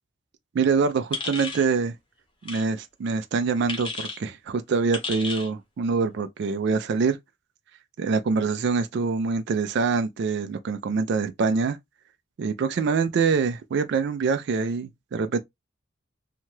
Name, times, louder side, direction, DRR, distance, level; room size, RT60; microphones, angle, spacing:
voice 1, 0.5-1.9 2.4-7.2 8.0-11.8 12.4-15.4, right 4 dB, 55° right, 0.3 m, -25 dB
sound 1, 1.1-1.7 2.4-2.6 3.7-4.2 4.9-5.5, left 3 dB, 25° left, 0.7 m, -33 dB
2.8 x 2.2 x 3.0 m
head